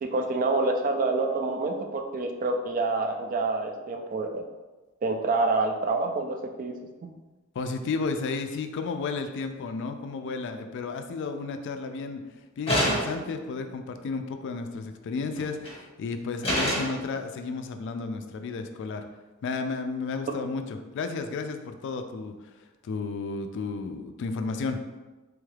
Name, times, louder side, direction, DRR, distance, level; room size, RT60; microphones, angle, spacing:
voice 1, 0.0-4.4 5.0-6.8, right 3 dB, 40° right, 5 dB, 0.3 m, -27 dB
voice 2, 7.6-12.2 12.6-19.0 19.4-20.6 20.9-22.3 22.8-24.8, left 4 dB, 60° left, 7 dB, 0.3 m, -32 dB
sound 1, 12.7-13.3 15.4-15.7 16.4-17.0, equal, 30° left, 0.9 m, -26 dB
3.4 x 2.3 x 3.2 m, 1.2 s
head